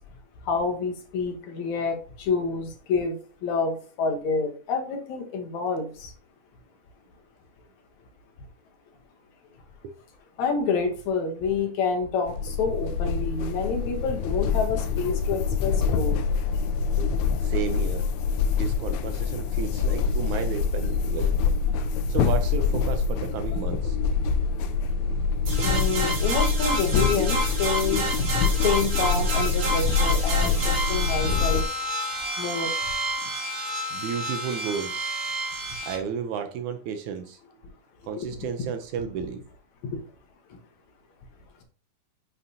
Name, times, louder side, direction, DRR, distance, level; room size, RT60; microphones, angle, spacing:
voice 1, 0.5-3.2 3.4-6.1 10.4-16.2 25.6-28.1 28.6-31.6 32.4-32.7 38.2-38.3, left 5 dB, 65° left, 3 dB, 2.2 m, -28 dB
sound 1, 12.3-31.6, left 5 dB, 80° left, 1.8 m, -25 dB
voice 2, 17.4-18.1 18.6-21.4 22.1-24.0 33.9-35.1 35.8-37.4 38.1-39.4, right 7 dB, 75° right, 7 dB, 1.9 m, -32 dB
sound 2, 25.5-36.0, right 1 dB, 45° right, 2.3 m, -29 dB
9.7 x 5.6 x 2.7 m, 0.40 s
omnidirectional pair, 3.8 m